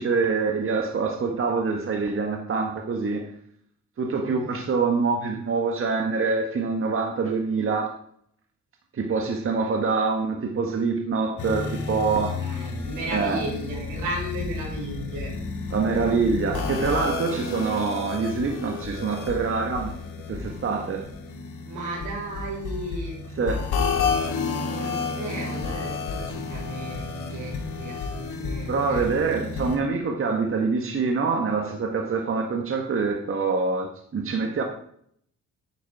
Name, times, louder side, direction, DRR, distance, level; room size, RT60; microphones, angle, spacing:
voice 1, 0.0-3.3 4.0-7.9 8.9-12.4 13.1-13.4 15.7-19.9 20.3-21.1 23.4-23.6 28.7-34.6, right 4 dB, 45° right, 3 dB, 1.6 m, -25 dB
voice 2, 4.2-4.6 12.4-15.3 21.6-23.2 24.7-29.1, right 1 dB, 90° right, -2 dB, 5.6 m, -34 dB
sound 1, 11.4-29.8, left 4 dB, 85° left, 2.8 m, -31 dB
9.8 x 8.7 x 4.8 m, 0.66 s
cardioid pair, 90°, 30 cm